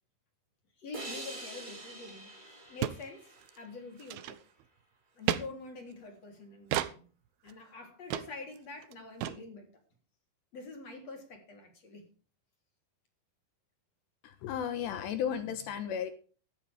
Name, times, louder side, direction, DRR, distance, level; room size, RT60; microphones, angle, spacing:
voice 1, 0.8-2.3 2.7-4.4 5.1-7.0 7.4-9.7 10.5-12.1, left 3 dB, 35° left, 4 dB, 4.0 m, -46 dB
sound 1, 0.9-4.2, right 1 dB, 15° right, 1.7 m, -46 dB
sound 2, 2.1-2.2 2.4-2.5 2.8-3.0 3.4-3.6 4.0-4.6 5.3-5.4 6.7-6.9 7.5-7.6 8.1-8.3 8.6-8.7 8.8-8.9 9.2-9.4, right 12 dB, 75° right, 2.3 m, -32 dB
voice 2, 14.2-16.1, left 8 dB, 75° left, 10 dB, 3.2 m, -34 dB
14.5 x 13.5 x 3.5 m, 0.39 s
omnidirectional pair, 5.4 m